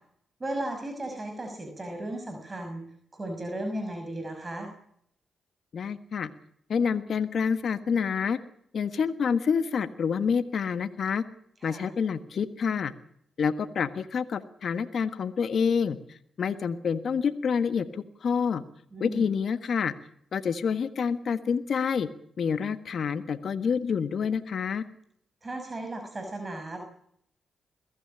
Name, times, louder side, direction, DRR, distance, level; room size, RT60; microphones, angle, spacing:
voice 1, 0.4-2.8 3.1-4.7 11.6-11.9 18.9-19.3 25.4-26.8, right 1 dB, 35° right, 5 dB, 5.9 m, -35 dB
voice 2, 5.7-6.3 6.7-8.4 8.7-11.2 11.6-12.9 13.4-18.6 19.0-19.9 20.3-22.1 22.4-24.8, left 6 dB, 65° left, 10 dB, 1.4 m, -28 dB
22.5 x 15.5 x 8.7 m, 0.69 s
hypercardioid pair, 40°, 0 cm